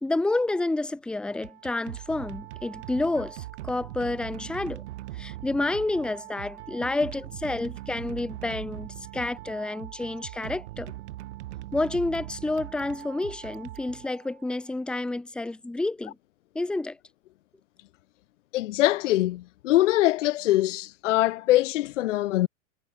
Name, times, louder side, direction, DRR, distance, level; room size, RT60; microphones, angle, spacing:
voice 1, 0.0-4.8 5.1-10.9 11.7-16.1 16.5-17.0, left 2 dB, ahead, 1.2 m, -29 dB
sound 1, 1.3-14.5, right 16 dB, 55° right, 7.6 m, -41 dB
voice 2, 18.5-22.5, left 15 dB, 65° left, 1.0 m, -23 dB
supercardioid pair, 155°, 40 cm